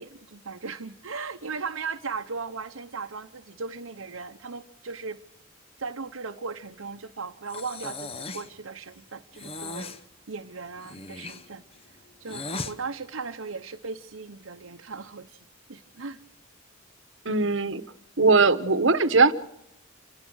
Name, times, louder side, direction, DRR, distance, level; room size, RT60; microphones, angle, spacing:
voice 1, 0.0-5.2 5.8-9.9 10.3-15.4 15.7-16.2, right 4 dB, 90° right, 3 dB, 0.9 m, -37 dB
Breathing, 7.5-8.5 9.3-10.0 10.8-12.7, left 3 dB, 30° left, 0.9 m, -37 dB
voice 2, 17.2-17.8 18.2-19.3, right 4 dB, 65° right, 13 dB, 1.1 m, -20 dB
27.5 x 17.5 x 6.3 m, 0.84 s
head